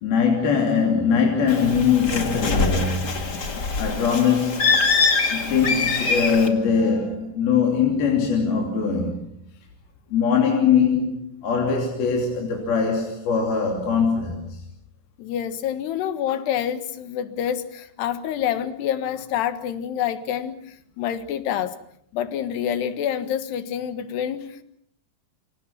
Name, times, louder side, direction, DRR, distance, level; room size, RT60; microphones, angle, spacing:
voice 1, 0.0-4.8 5.3-9.3 10.1-14.6, left 6 dB, 65° left, 4.9 m, -22 dB
Bird, 1.5-6.5, left 4 dB, 30° left, 2.1 m, -24 dB
voice 2, 15.2-20.6 21.0-21.8 22.1-24.6, left 9 dB, 85° left, 3.7 m, -27 dB
28.0 x 26.5 x 5.9 m
omnidirectional pair, 4.7 m